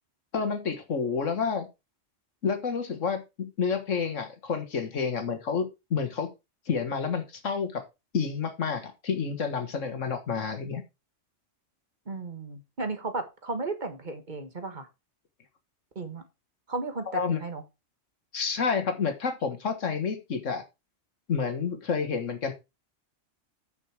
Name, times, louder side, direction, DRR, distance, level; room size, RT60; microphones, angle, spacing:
voice 1, 0.3-1.7 2.4-6.3 6.7-7.8 8.1-10.8 17.1-17.4 18.3-20.6 21.3-22.5, left 5 dB, 85° left, 8 dB, 1.9 m, -29 dB
voice 2, 12.1-14.9 15.9-16.2 16.7-17.6, right 3 dB, 40° right, 8 dB, 1.5 m, -34 dB
8.9 x 6.4 x 4.7 m, 0.25 s
omnidirectional pair, 1.3 m